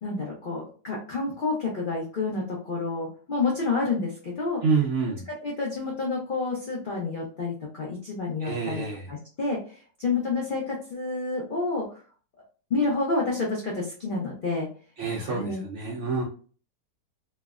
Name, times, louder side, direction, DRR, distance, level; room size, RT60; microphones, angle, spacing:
voice 1, 0.0-4.6 5.4-9.6 10.0-11.8 12.7-14.7 15.3-15.6, left 3 dB, 80° left, -3 dB, 0.4 m, -29 dB
voice 2, 4.6-5.3 8.4-9.1 15.0-16.2, right 4 dB, 70° right, -2 dB, 0.7 m, -27 dB
3.2 x 2.0 x 2.3 m, 0.40 s
omnidirectional pair, 1.7 m